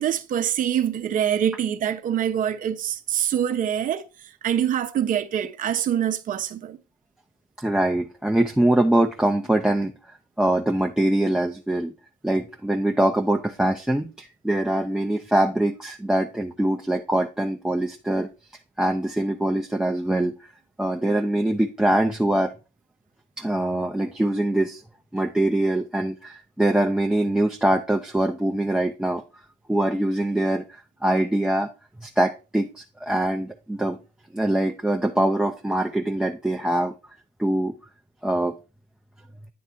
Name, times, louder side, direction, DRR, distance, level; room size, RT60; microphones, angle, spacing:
voice 1, 0.0-4.1 4.4-6.8, right 9 dB, 55° right, 0.7 m, -25 dB
voice 2, 7.6-9.9 10.4-11.9 12.2-18.3 18.8-20.3 20.8-22.5 23.4-24.8 25.1-29.2 29.7-31.7 32.0-34.0 34.3-36.9 37.4-37.8 38.2-38.5, right 1 dB, 5° right, 0.5 m, -23 dB
9.4 x 3.3 x 4.2 m
cardioid pair, 110°, 17 cm